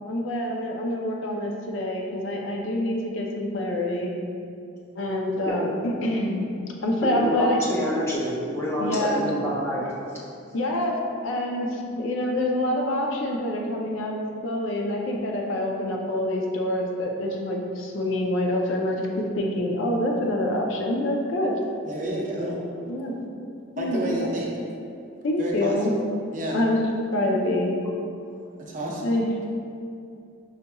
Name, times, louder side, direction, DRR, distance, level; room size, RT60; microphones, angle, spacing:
voice 1, 0.1-4.1 5.0-6.5 6.8-7.6 8.8-9.2 10.5-11.0 11.2-14.1 14.4-21.5 22.9-23.2 23.7-24.2 25.2-25.9 26.5-26.8 27.1-27.7 29.0-29.3, left 1 dB, 80° left, 0 dB, 0.5 m, -26 dB
voice 2, 7.1-10.2 22.4-22.5, equal, 15° left, -8 dB, 0.7 m, -27 dB
voice 3, 21.8-22.6 23.8-24.5 25.4-25.8 26.3-26.7 28.6-29.1, right 1 dB, 40° right, -3 dB, 0.6 m, -30 dB
5.6 x 2.9 x 2.3 m, 2.5 s
head